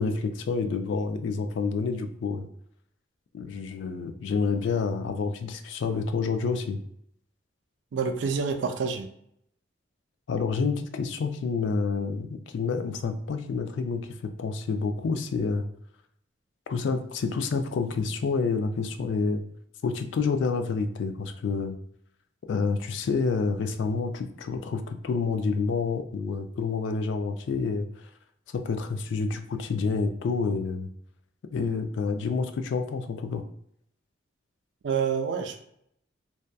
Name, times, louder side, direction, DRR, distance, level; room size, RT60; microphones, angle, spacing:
voice 1, 0.0-2.5 3.3-6.8 10.3-15.6 16.7-19.4 19.8-21.8 22.5-27.9 28.5-30.9 31.5-33.4, left 4 dB, 70° left, 8 dB, 0.3 m, -28 dB
voice 2, 7.9-9.1 34.8-35.6, right 6 dB, 70° right, 6 dB, 0.3 m, -27 dB
2.7 x 2.2 x 2.2 m, 0.73 s
head